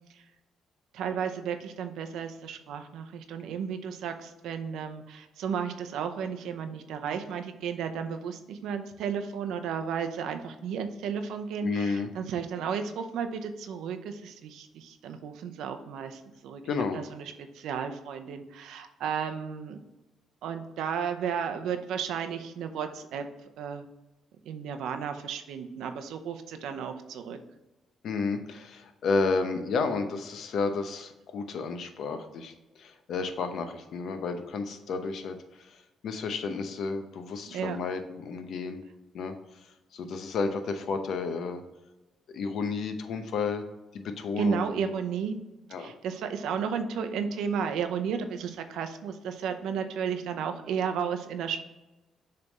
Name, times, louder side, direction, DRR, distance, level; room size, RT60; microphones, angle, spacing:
voice 1, 0.9-16.6 16.9-17.2 17.5-19.8 20.4-23.3 23.6-23.8 24.5-27.4 37.5-37.8 44.4-45.4 45.8-51.6, right 7 dB, 85° right, 7 dB, 0.6 m, -33 dB
voice 2, 11.6-12.1 16.6-17.0 28.0-38.8 39.1-41.6 42.3-43.6 43.9-44.7 45.7-45.9, left 4 dB, 70° left, 7 dB, 0.7 m, -32 dB
6.8 x 3.4 x 4.1 m, 1.0 s
cardioid pair, 90°, 0 cm